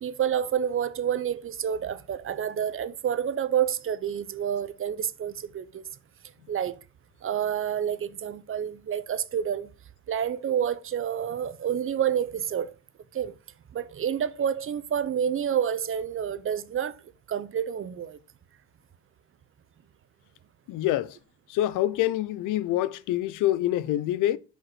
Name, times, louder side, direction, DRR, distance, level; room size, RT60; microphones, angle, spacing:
voice 1, 0.0-5.8 6.5-6.8 7.2-9.7 10.1-12.7 13.1-13.3 13.7-16.9 17.3-18.2, right 9 dB, 45° right, 0.6 m, -28 dB
voice 2, 20.7-21.2 21.5-24.4, left 14 dB, 85° left, 0.5 m, -26 dB
5.8 x 5.1 x 4.7 m
cardioid pair, 90°, 30 cm